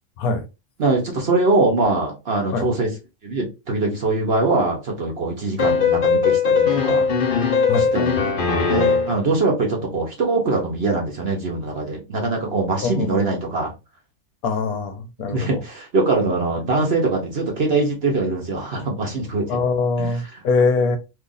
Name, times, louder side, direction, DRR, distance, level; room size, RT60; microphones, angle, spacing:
voice 1, 0.8-2.9 3.2-7.1 7.8-13.7 15.3-19.6 20.0-20.4, right 3 dB, 50° right, 0.9 m, -22 dB
sound 1, 5.6-9.2, left 5 dB, 50° left, 0.7 m, -19 dB
voice 2, 12.8-13.3 14.4-15.6 19.5-21.0, left 4 dB, 75° left, 1.1 m, -23 dB
2.8 x 2.5 x 3.8 m
omnidirectional pair, 1.6 m